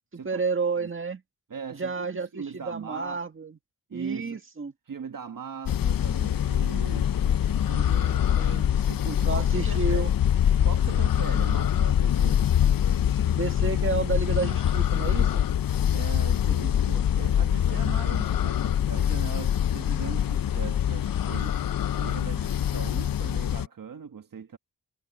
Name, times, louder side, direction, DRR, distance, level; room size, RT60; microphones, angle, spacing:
voice 1, 0.2-1.2 1.8-3.5 3.9-4.7 7.9-8.7 9.3-10.1 13.3-15.4, right 4 dB, 35° right, 1.8 m, -31 dB
voice 2, 1.5-3.2 3.9-4.4 4.9-8.1 8.9-10.1 10.6-12.5 15.9-21.6 21.9-24.6, right 6 dB, 65° right, 1.4 m, -39 dB
sound 1, 5.7-23.7, left 10 dB, 70° left, 0.6 m, -24 dB
wide cardioid pair, 115°, 36 cm